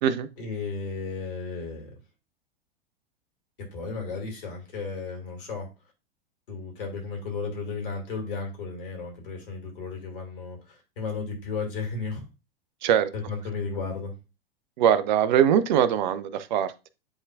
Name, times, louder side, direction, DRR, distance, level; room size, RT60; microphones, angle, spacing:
voice 1, 0.4-1.9 3.6-5.7 6.5-12.2 13.1-14.1, left 4 dB, 60° left, 2.8 m, -34 dB
voice 2, 14.8-16.9, right 9 dB, 50° right, 0.7 m, -22 dB
9.9 x 3.8 x 2.5 m
figure-of-eight pair, 95°, 31 cm